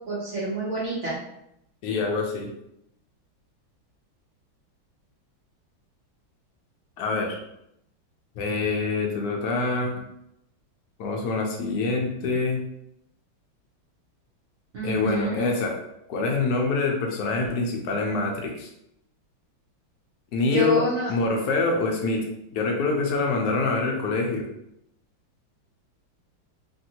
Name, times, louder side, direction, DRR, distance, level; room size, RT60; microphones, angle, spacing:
voice 1, 0.1-1.2 14.7-15.4 20.5-21.1, right 1 dB, 75° right, -7 dB, 0.6 m, -27 dB
voice 2, 1.8-2.5 7.0-7.4 8.4-9.9 11.0-12.6 14.8-15.7 16.1-18.7 20.3-20.8 21.1-22.2 22.5-24.4, left 3 dB, 70° left, 0 dB, 0.9 m, -25 dB
3.2 x 2.6 x 2.8 m, 0.81 s
omnidirectional pair, 2.2 m